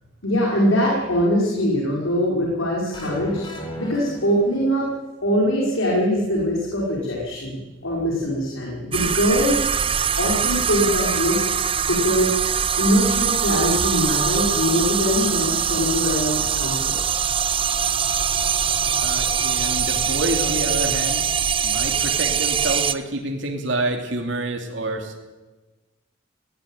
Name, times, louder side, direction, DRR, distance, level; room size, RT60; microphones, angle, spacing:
voice 1, 0.2-3.4 3.8-4.9 5.2-9.7 10.2-11.5 11.8-12.4 12.8-17.0, equal, 85° left, -2 dB, 5.1 m, -22 dB
sound 1, 2.9-4.9, equal, 25° left, 4.4 m, -35 dB
sound 2, 8.9-22.9, right 7 dB, 25° right, 0.7 m, -22 dB
voice 2, 18.9-21.3 21.6-25.2, right 2 dB, 65° right, 1 dB, 2.9 m, -28 dB
19.5 x 18.0 x 9.2 m, 1.2 s
head